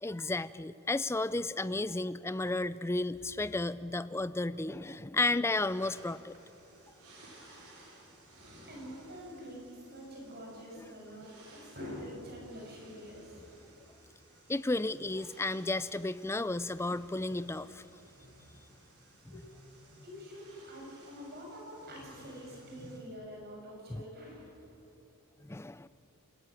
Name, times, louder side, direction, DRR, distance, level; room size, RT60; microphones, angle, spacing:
voice 1, 0.0-6.3 10.8-10.9 14.5-17.8 19.3-19.4 23.9-24.0 25.4-25.9, left 2 dB, 10° left, 15 dB, 0.4 m, -33 dB
sound 1, 5.5-23.0, right 1 dB, 90° right, 6.7 m, -57 dB
voice 2, 8.7-13.7 19.3-19.4 20.0-24.5, equal, 45° right, -1 dB, 6.9 m, -46 dB
27.0 x 15.0 x 9.7 m, 2.8 s
head